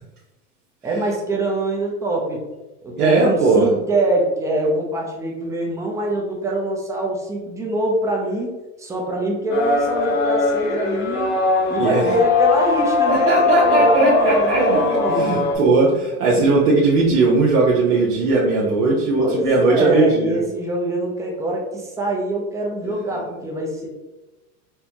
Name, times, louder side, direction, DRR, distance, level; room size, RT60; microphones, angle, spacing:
voice 1, 0.8-2.4 2.8-8.5 8.8-11.3 11.7-15.3 19.2-23.9, right 1 dB, 5° right, -1 dB, 0.6 m, -24 dB
voice 2, 3.0-3.7 11.8-12.2 13.1-20.4 22.8-23.0, right 3 dB, 75° right, -4 dB, 0.9 m, -18 dB
sound 1, 9.5-15.5, left 4 dB, 45° left, 0.9 m, -20 dB
4.4 x 2.2 x 2.8 m, 1.1 s
hypercardioid pair, 115°, 45 cm